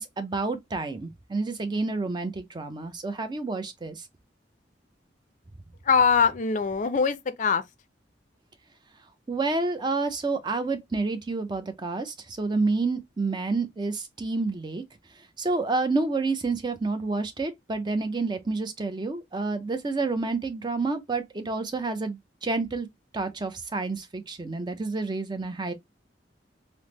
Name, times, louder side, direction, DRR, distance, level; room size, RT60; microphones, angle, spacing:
voice 1, 0.0-4.0 9.3-14.8 15.4-22.9 23.1-25.7, right 3 dB, 25° right, 0.5 m, -29 dB
voice 2, 5.9-7.6, left 6 dB, 40° left, 0.4 m, -22 dB
3.4 x 2.0 x 2.9 m
head